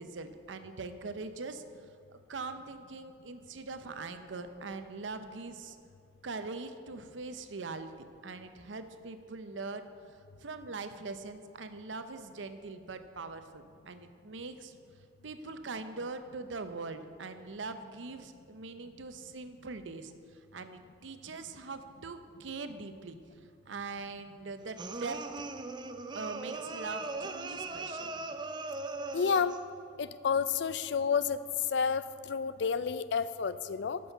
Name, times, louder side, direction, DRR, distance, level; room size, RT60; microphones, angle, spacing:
voice 1, 0.0-1.6 2.1-5.8 6.2-7.9 8.2-14.7 15.2-23.2 23.7-25.2 26.1-28.1, right 3 dB, 85° right, 9 dB, 0.7 m, -42 dB
sound 1, 24.8-29.7, right 3 dB, 25° right, 0.5 m, -39 dB
voice 2, 29.1-29.5 30.0-31.4 31.7-34.0, left 6 dB, 70° left, 14 dB, 0.4 m, -30 dB
11.0 x 6.3 x 5.8 m, 2.5 s
head